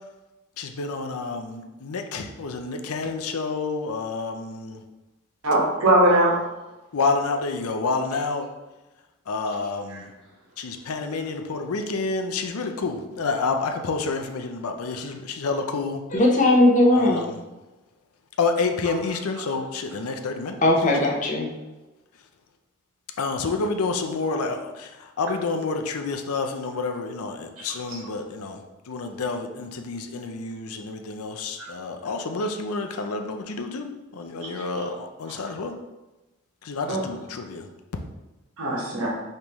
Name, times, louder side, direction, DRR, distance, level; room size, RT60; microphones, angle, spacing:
voice 1, 0.6-4.8 6.9-8.5 9.3-10.1 10.6-16.0 16.9-17.4 18.4-20.6 23.2-28.6 28.9-35.7 36.6-37.7, left 4 dB, 85° left, 5 dB, 0.5 m, -29 dB
voice 2, 5.4-6.3 9.9-10.0 27.6-28.0 31.6-31.7 34.4-34.5 36.9-37.0 38.6-39.1, right 1 dB, 80° right, -4 dB, 1.4 m, -21 dB
voice 3, 16.1-17.3 20.6-21.5, left 1 dB, 35° left, -1 dB, 0.7 m, -18 dB
5.3 x 3.3 x 3.0 m, 1.1 s
head